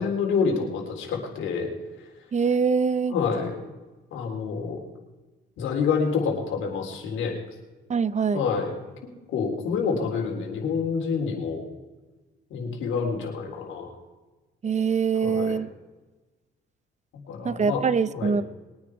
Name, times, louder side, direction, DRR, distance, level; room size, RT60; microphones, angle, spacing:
voice 1, 0.0-1.7 3.1-3.6 4.1-4.8 5.6-7.3 8.3-8.7 9.3-11.6 12.5-13.9 15.2-15.6 17.3-17.8 18.1-18.3, left 5 dB, 85° left, 0 dB, 3.8 m, -27 dB
voice 2, 2.3-3.1 7.9-8.4 14.6-15.7 17.4-18.4, right 5 dB, 35° right, 17 dB, 0.7 m, -23 dB
22.0 x 9.8 x 4.9 m, 1.2 s
cardioid pair, 90°, 20 cm